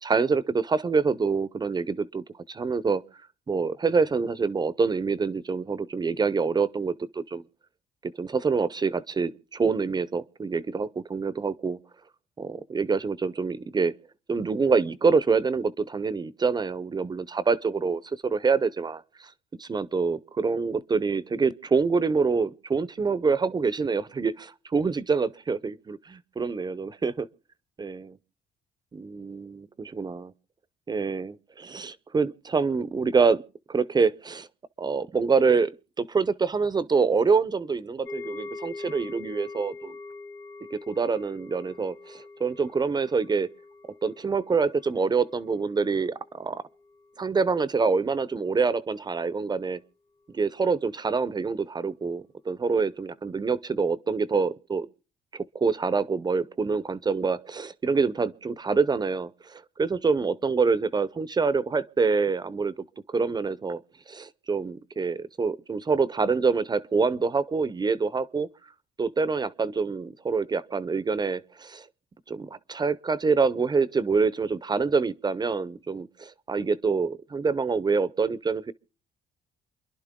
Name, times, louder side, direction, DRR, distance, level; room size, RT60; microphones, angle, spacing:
voice 1, 0.0-3.0 3.5-7.4 8.0-11.8 12.4-13.9 14.3-19.3 19.6-27.3 27.8-28.2 28.9-30.3 30.9-33.4 33.7-34.5 34.8-35.7 36.0-39.9 40.7-43.5 44.0-46.6 47.2-49.8 50.3-54.9 55.3-62.7 63.1-63.8 64.1-68.5 69.0-71.9 72.3-78.7, right 4 dB, 25° right, 0.7 m, -26 dB
sound 1, 38.0-47.2 47.4-47.7 48.2-48.3, left 3 dB, 15° left, 0.9 m, -44 dB
29.0 x 11.0 x 3.7 m
cardioid pair, 110°, 17 cm